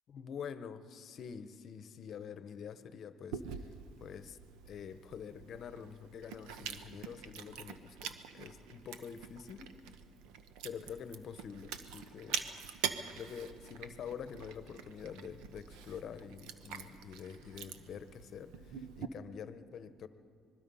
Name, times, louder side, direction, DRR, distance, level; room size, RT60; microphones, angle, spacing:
voice 1, 0.1-3.7 4.0-4.4 4.6-9.7 10.6-12.5 13.1-20.1, left 7 dB, 55° left, 12 dB, 1.0 m, -46 dB
Chewing mastication, 3.3-19.1, right 8 dB, 90° right, 1.1 m, -45 dB
25.5 x 21.0 x 5.6 m, 2.5 s
cardioid pair, 110°, 0 cm